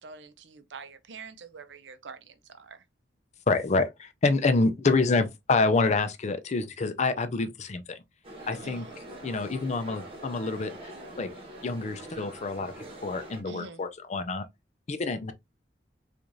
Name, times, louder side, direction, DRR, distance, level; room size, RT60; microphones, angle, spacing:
voice 1, 0.0-2.8 8.6-8.9 13.5-13.8, right 5 dB, 75° right, 0.6 m, -46 dB
voice 2, 3.5-8.0 8.5-8.9 9.2-10.9 11.2-11.3 11.6-14.5 14.9-15.3, left 3 dB, 40° left, 0.5 m, -27 dB
sound 1, 8.2-13.4, right 1 dB, 30° right, 1.2 m, -44 dB
4.6 x 2.5 x 2.6 m
head